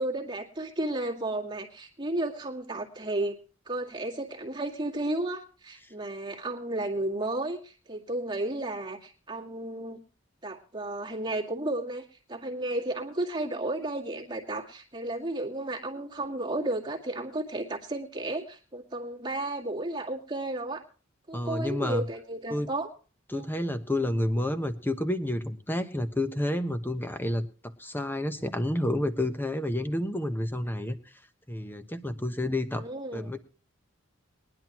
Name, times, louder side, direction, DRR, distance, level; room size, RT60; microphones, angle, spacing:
voice 1, 0.0-3.4 3.7-10.0 10.4-20.8 21.3-22.9 23.3-23.5 32.8-33.4, right 2 dB, 25° right, 0 dB, 2.0 m, -33 dB
voice 2, 21.3-22.0 22.5-22.7 23.3-31.0 31.5-32.9 33.1-33.4, left 1 dB, 10° left, 9 dB, 1.0 m, -30 dB
21.0 x 10.5 x 3.0 m, 0.36 s
head